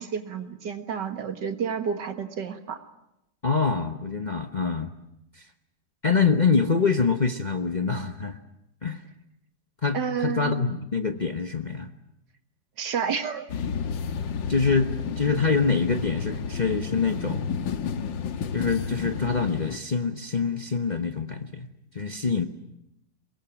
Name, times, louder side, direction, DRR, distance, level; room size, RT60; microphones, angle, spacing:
voice 1, 0.0-2.8 9.9-10.8 12.8-13.4, right 7 dB, 70° right, 8 dB, 2.2 m, -30 dB
voice 2, 3.4-4.9 5.3-5.4 6.0-8.4 8.8-9.0 9.8-11.9 14.5-17.5 18.5-21.7 21.9-22.5, left 5 dB, 30° left, 6 dB, 1.0 m, -25 dB
sound 1, 13.5-19.8, left 6 dB, 85° left, 1.9 m, -31 dB
23.5 x 22.0 x 9.1 m, 0.85 s
omnidirectional pair, 2.0 m